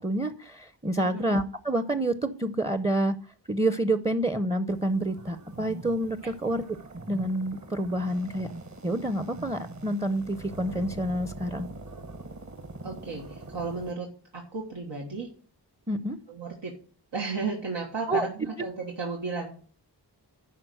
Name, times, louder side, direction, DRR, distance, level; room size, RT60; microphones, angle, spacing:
voice 1, 0.0-3.2 3.5-6.6 7.1-8.5 8.8-11.7 15.9-16.2 18.1-18.3, right 1 dB, 15° right, 11 dB, 0.6 m, -28 dB
voice 2, 1.0-1.3 6.2-6.3 12.8-15.3 16.3-16.8 17.1-19.5, right 4 dB, 90° right, -1 dB, 1.5 m, -34 dB
sound 1, 4.7-13.9, right 2 dB, 40° right, 1.2 m, -43 dB
11.0 x 4.2 x 6.3 m, 0.43 s
wide cardioid pair, 55°, 42 cm